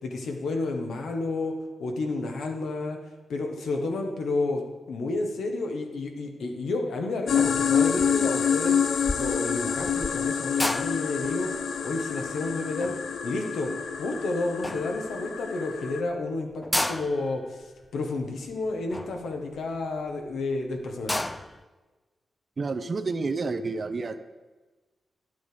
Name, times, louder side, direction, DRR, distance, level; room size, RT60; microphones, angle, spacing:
voice 1, 0.0-1.5 1.8-3.0 3.3-8.8 9.1-11.5 11.8-12.9 13.2-13.7 14.0-17.6 17.9-21.2, left 2 dB, 90° left, 3 dB, 1.4 m, -30 dB
sound 1, 7.3-16.0, left 7 dB, 70° left, 0.6 m, -27 dB
sound 2, 8.0-8.3 8.6-14.2 14.6-15.4 15.8-16.1 16.5-20.1 20.5-20.6 20.9-21.6, left 1 dB, 10° left, 0.4 m, -34 dB
voice 2, 22.6-24.2, right 3 dB, 40° right, 10 dB, 0.6 m, -29 dB
11.0 x 7.6 x 5.1 m, 1.3 s
wide cardioid pair, 125°, 0 cm